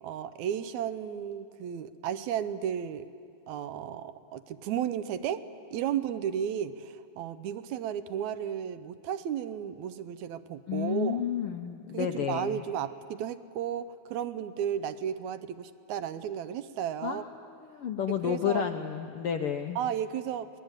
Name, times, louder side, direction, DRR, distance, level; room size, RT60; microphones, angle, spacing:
voice 1, 0.0-3.1 3.5-11.2 11.9-17.2 18.2-18.7 19.8-20.5, right 9 dB, 75° right, 13 dB, 2.0 m, -34 dB
voice 2, 10.7-12.6 17.0-17.3 17.6-19.8, left 8 dB, 75° left, 6 dB, 1.3 m, -31 dB
25.5 x 19.0 x 8.9 m, 2.4 s
omnidirectional pair, 3.4 m